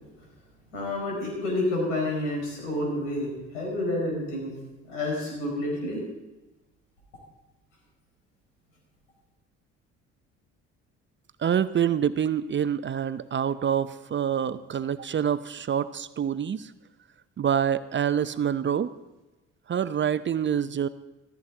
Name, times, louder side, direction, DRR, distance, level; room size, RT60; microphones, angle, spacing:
voice 1, 0.7-4.5 4.9-6.0, left 1 dB, 80° left, -1 dB, 4.8 m, -29 dB
voice 2, 11.4-16.7 17.4-18.9 19.7-20.9, right 8 dB, 30° right, 14 dB, 0.6 m, -26 dB
15.0 x 13.5 x 3.8 m, 1.1 s
hypercardioid pair, 50°, 36 cm